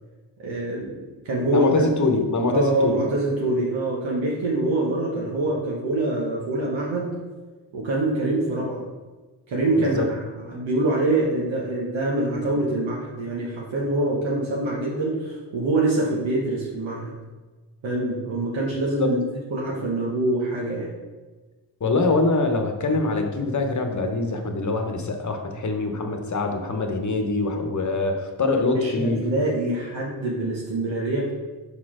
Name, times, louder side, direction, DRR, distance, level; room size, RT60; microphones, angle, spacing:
voice 1, 0.4-1.0 1.2-1.9 2.5-7.2 7.7-8.8 9.5-17.1 17.8-19.2 19.5-20.9 28.8-31.3, right 2 dB, 75° right, -4 dB, 1.3 m, -25 dB
voice 2, 1.5-3.1 9.8-10.1 19.0-19.1 21.8-29.3, left 3 dB, 40° left, 4 dB, 1.1 m, -24 dB
5.5 x 4.2 x 5.0 m, 1.3 s
cardioid pair, 55°, 46 cm